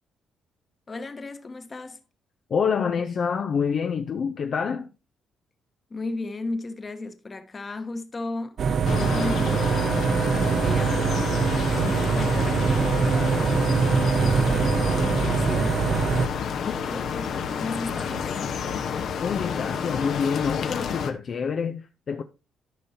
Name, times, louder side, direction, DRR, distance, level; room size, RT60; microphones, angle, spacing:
voice 1, 0.9-2.0 5.9-13.5 14.0-15.9 16.3-18.9, left 3 dB, 30° left, 1.2 m, -36 dB
voice 2, 2.5-4.9 19.2-22.2, left 6 dB, 55° left, 0.6 m, -27 dB
sound 1, 8.6-16.3, right 6 dB, 55° right, 0.5 m, -23 dB
sound 2, 8.8-21.1, left 7 dB, 70° left, 1.1 m, -29 dB
13.5 x 5.4 x 2.8 m
cardioid pair, 90°, 0 cm